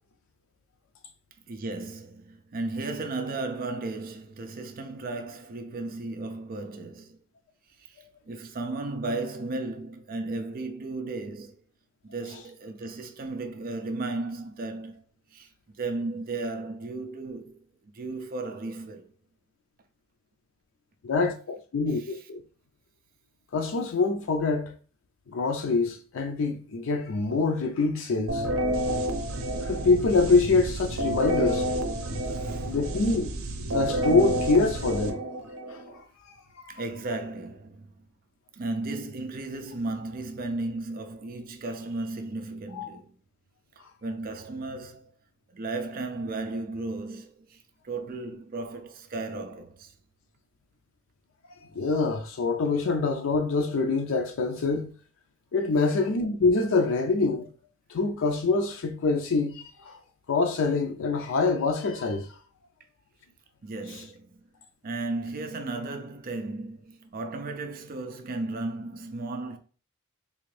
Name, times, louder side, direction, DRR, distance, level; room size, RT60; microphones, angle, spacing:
voice 1, 1.5-7.2 7.8-8.0 8.3-11.6 12.0-15.0 15.3-15.5 15.7-19.1 22.0-22.2 32.3-32.8 36.7-37.9 38.5-43.1 44.0-45.1 45.5-49.9 55.8-55.9 63.6-64.5 64.8-69.6, right 2 dB, 45° right, 0.4 m, -35 dB
voice 2, 21.0-22.4 23.5-24.7 25.3-28.5 29.6-31.7 32.6-33.3 33.7-35.2 35.7-36.7 42.7-43.0 51.7-54.9 55.5-57.5 57.9-60.0 60.3-62.3 63.9-64.0, left 3 dB, 70° left, 0.5 m, -25 dB
sound 1, 28.3-35.9, right 1 dB, 85° right, 0.6 m, -29 dB
3.7 x 2.5 x 3.2 m
head